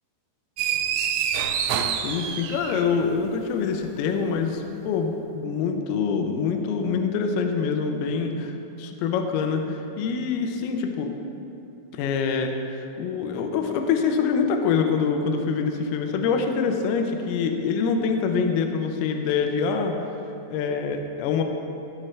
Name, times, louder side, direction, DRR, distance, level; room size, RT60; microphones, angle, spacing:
sound 1, 0.6-3.1, right 8 dB, 80° right, 2.5 m, -26 dB
voice 1, 1.9-11.1 11.9-20.1 20.5-21.4, left 5 dB, 80° left, 5 dB, 2.4 m, -25 dB
16.0 x 6.2 x 3.3 m, 2.9 s
omnidirectional pair, 4.9 m